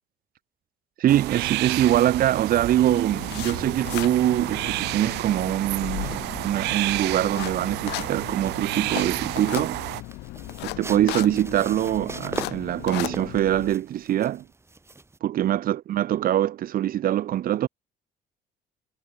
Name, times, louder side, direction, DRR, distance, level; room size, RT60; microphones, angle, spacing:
voice 1, 1.0-9.8 10.6-14.4 15.2-17.7, right 12 dB, 60° right, 1.3 m, -23 dB
sound 1, 1.1-10.0, right 20 dB, 90° right, 3.0 m, -31 dB
sound 2, 1.7-15.2, right 3 dB, 15° right, 4.2 m, -43 dB
sound 3, 2.9-13.7, left 20 dB, 90° left, 5.3 m, -36 dB
cardioid pair, 110°, 17 cm